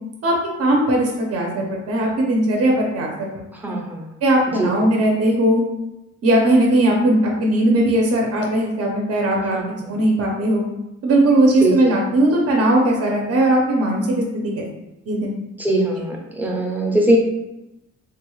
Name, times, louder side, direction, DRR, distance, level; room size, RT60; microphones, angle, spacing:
voice 1, 0.6-3.3 3.7-3.8 4.2-5.6 6.2-9.6 9.9-10.6 11.0-14.2 14.6-14.7 15.1-15.3, right 1 dB, 55° right, -1 dB, 0.6 m, -18 dB
voice 2, 3.6-4.0 4.6-4.7 9.5-9.9 11.6-11.7 15.6-17.2, right 1 dB, 5° right, -2 dB, 0.5 m, -21 dB
3.5 x 2.3 x 3.1 m, 0.94 s
wide cardioid pair, 140°, 30 cm